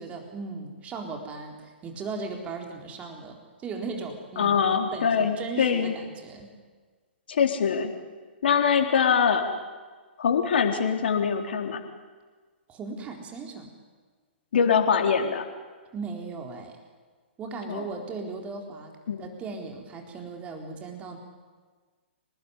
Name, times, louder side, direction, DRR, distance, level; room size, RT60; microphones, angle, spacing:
voice 1, 0.0-4.6 4.9-6.5 12.7-13.7 15.9-16.8 17.4-18.9 19.2-21.2, right 4 dB, 20° right, 3 dB, 4.0 m, -37 dB
voice 2, 4.4-5.9 7.3-7.9 8.4-9.5 10.2-11.8 14.5-15.4 17.7-17.8 19.1-19.3, left 6 dB, 60° left, 3 dB, 4.0 m, -23 dB
27.5 x 19.5 x 9.9 m, 1.4 s
figure-of-eight pair, 125°, 6 cm